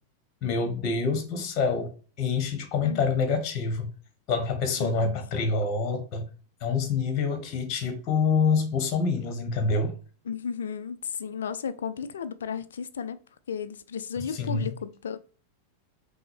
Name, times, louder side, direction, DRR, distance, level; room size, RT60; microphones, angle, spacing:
voice 1, 0.4-1.9 2.2-3.9 4.3-6.3 6.6-10.0 14.4-14.7, left 4 dB, 40° left, 1.0 m, -26 dB
voice 2, 4.8-5.2 10.3-13.2 13.5-15.2, left 7 dB, 65° left, 0.4 m, -34 dB
5.7 x 2.0 x 3.2 m
figure-of-eight pair, 90°, 0 cm